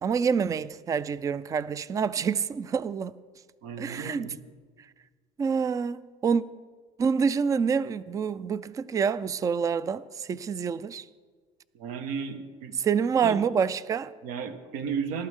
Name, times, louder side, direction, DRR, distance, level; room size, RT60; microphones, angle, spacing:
voice 1, 0.0-3.1 3.8-4.3 5.4-6.4 7.0-11.0 12.8-14.1, right 6 dB, 25° right, 0.4 m, -27 dB
voice 2, 3.6-4.3 11.7-12.7 13.2-13.3 14.2-15.3, right 6 dB, 80° right, 1.6 m, -34 dB
20.5 x 12.5 x 3.7 m
cardioid pair, 125°, 14 cm